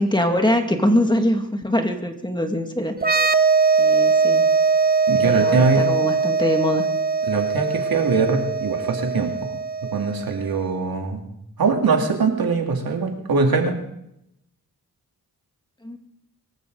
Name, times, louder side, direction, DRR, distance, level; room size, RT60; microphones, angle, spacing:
voice 1, 0.0-2.9 3.8-4.6 5.2-6.9 15.8-16.0, left 1 dB, 10° left, 5 dB, 2.2 m, -23 dB
sound 1, 3.0-10.5, right 5 dB, 25° right, 1.0 m, -21 dB
voice 2, 5.1-5.9 7.3-9.3 9.9-11.2 11.6-13.8, right 4 dB, 75° right, 3 dB, 2.6 m, -22 dB
24.0 x 14.0 x 4.0 m, 0.78 s
cardioid pair, 75°, 36 cm